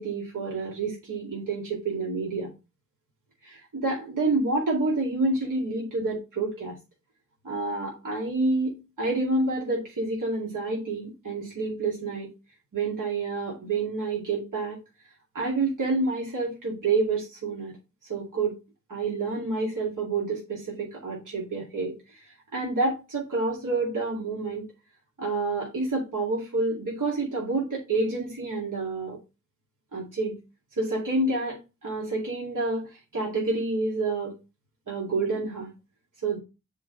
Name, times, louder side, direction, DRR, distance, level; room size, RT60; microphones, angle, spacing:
voice 1, 0.0-2.5 3.4-6.8 7.4-12.3 12.7-14.8 15.3-17.7 18.1-18.5 18.9-21.9 22.5-24.6 25.2-29.2 29.9-30.3 30.8-34.3 34.9-35.7 36.2-36.4, right 3 dB, 70° right, -3 dB, 2.4 m, -28 dB
7.4 x 3.9 x 4.0 m, 0.27 s
cardioid pair, 45°, 32 cm